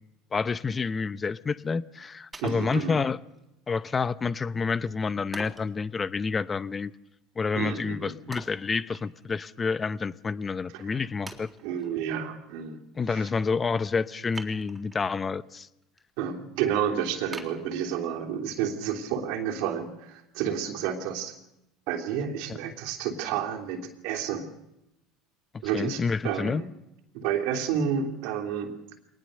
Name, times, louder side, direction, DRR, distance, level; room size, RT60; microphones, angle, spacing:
voice 1, 0.3-3.2 3.7-6.9 7.4-11.5 13.0-15.7 22.5-22.6 25.7-26.6, left 5 dB, 25° left, 18 dB, 0.8 m, -29 dB
Wood, 2.3-3.4 3.9-4.0 5.3-5.7 8.3-9.4 9.8-9.9 10.5-10.6 11.3-11.9 14.3-15.1 15.6-16.0 16.4-16.5 17.3-18.3 18.8-18.9, right 3 dB, 20° right, 3.5 m, -44 dB
voice 2, 2.4-3.0 7.5-8.1 10.7-10.9 11.6-12.8 13.1-13.3 16.2-21.3 21.9-24.5 25.6-26.7 27.1-28.7, right 8 dB, 70° right, 3 dB, 3.2 m, -30 dB
22.5 x 19.5 x 6.7 m, 0.88 s
hypercardioid pair, 80°, 0 cm